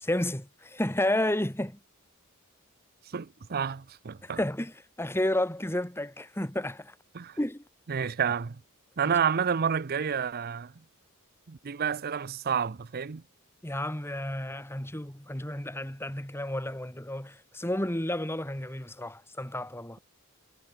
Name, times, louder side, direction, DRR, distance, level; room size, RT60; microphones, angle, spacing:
voice 1, 0.0-1.8 4.2-6.9 7.4-7.6 8.0-8.1 9.0-9.1 13.6-20.0, left 1 dB, 10° left, 2.6 m, -31 dB
voice 2, 3.1-4.4 7.1-7.4 7.9-8.6 9.0-10.7 11.5-13.2, right 7 dB, 45° right, 0.6 m, -29 dB
head